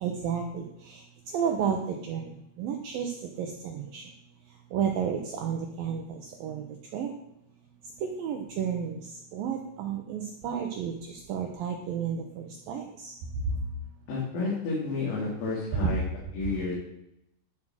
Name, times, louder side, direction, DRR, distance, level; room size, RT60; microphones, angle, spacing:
voice 1, 0.0-4.0 4.7-6.6 6.9-7.1 8.0-13.1, right 7 dB, 90° right, 3 dB, 2.0 m, -32 dB
voice 2, 14.1-16.0 16.3-16.7, left 3 dB, 90° left, -7 dB, 5.8 m, -30 dB
11.5 x 7.4 x 6.4 m, 0.82 s
omnidirectional pair, 5.4 m